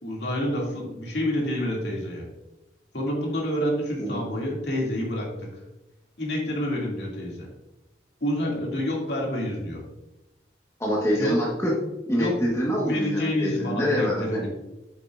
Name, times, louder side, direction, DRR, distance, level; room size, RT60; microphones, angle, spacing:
voice 1, 0.0-2.3 2.9-5.5 6.2-7.5 8.2-9.8 11.2-11.4 12.2-12.5 12.9-14.5, equal, 70° left, -2 dB, 2.3 m, -28 dB
voice 2, 10.8-11.7 12.1-14.5, equal, 15° left, -3 dB, 1.2 m, -25 dB
8.0 x 7.3 x 2.5 m, 0.97 s
head